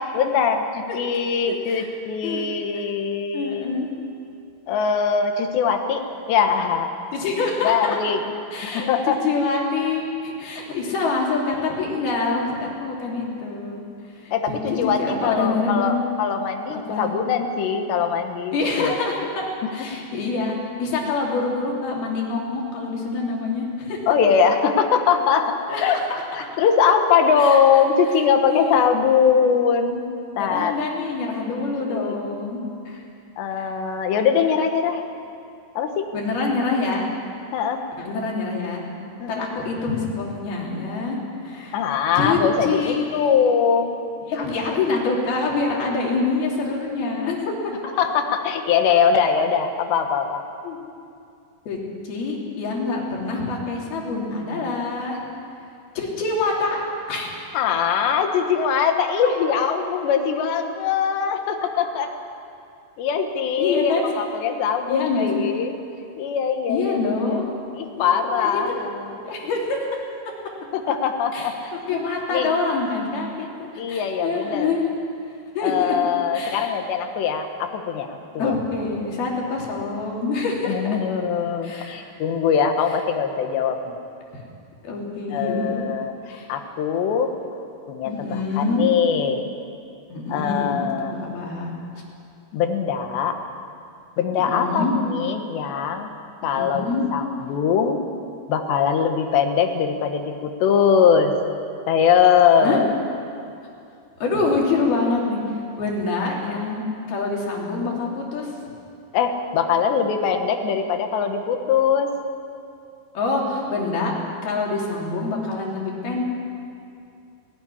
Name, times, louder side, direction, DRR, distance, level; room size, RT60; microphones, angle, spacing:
voice 1, 0.0-3.6 4.7-6.0 6.3-6.9 7.6-8.2 8.6-9.2 14.3-19.0 19.6-19.7 24.1-26.0 26.3-30.0 30.4-30.8 31.9-32.2 33.4-35.1 35.8-36.1 37.5-37.8 39.2-39.4 41.7-44.0 48.0-50.4 57.5-62.1 63.0-65.8 66.2-67.4 67.8-69.2 70.7-71.6 72.3-72.5 73.8-74.7 75.6-78.1 78.4-78.5 80.6-84.0 85.3-87.3 87.9-89.4 90.3-91.1 92.5-93.4 94.2-96.1 96.4-98.0 98.5-101.3 101.9-102.9 109.1-112.2, left 7 dB, 70° left, 5 dB, 3.4 m, -21 dB
voice 2, 1.5-1.9 2.2-2.5 3.3-3.9 7.1-8.0 8.5-8.9 9.2-13.8 14.2-16.0 16.7-17.1 18.5-19.5 19.7-24.0 25.7-26.2 27.4-27.6 28.5-28.8 30.3-33.0 33.6-33.7 36.1-37.1 38.0-38.9 39.3-41.2 41.4-41.8 42.2-43.3 44.2-47.7 50.6-50.8 51.7-51.8 52.0-55.2 55.9-56.8 57.1-57.3 63.6-64.1 64.9-65.4 66.7-67.6 68.0-68.9 69.2-69.8 71.3-71.5 71.9-74.8 75.5-75.9 76.3-76.7 78.3-81.0 81.6-82.0 84.3-84.4 84.8-85.8 86.3-86.5 88.1-88.9 90.1-91.7 94.3-94.9 96.4-97.0 102.6-102.8 104.2-105.4 105.8-106.8 107.1-108.5 113.1-114.1 114.4-116.2, left 3 dB, 55° left, -2 dB, 4.9 m, -26 dB
18.5 x 18.0 x 10.0 m, 2.5 s
omnidirectional pair, 5.4 m